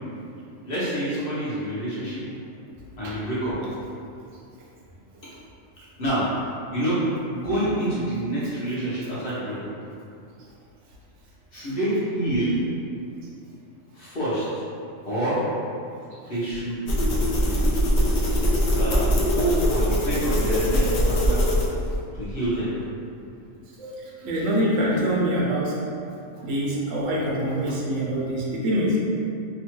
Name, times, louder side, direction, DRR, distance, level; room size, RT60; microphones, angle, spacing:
voice 1, 0.6-2.2 3.0-3.6 6.0-7.0 7.3-9.7 11.5-12.6 13.9-14.5 15.1-15.4 16.3-16.8 18.8-19.1 19.3-21.4 22.1-22.7, right 1 dB, 50° left, -10 dB, 0.8 m, -27 dB
Scratching beard cheek with opened mouth, 16.9-22.0, equal, 80° left, 0.4 m, -22 dB
voice 2, 24.2-25.7 26.4-29.0, equal, 75° right, -4 dB, 0.9 m, -24 dB
2.8 x 2.2 x 2.9 m, 2.5 s
omnidirectional pair, 1.4 m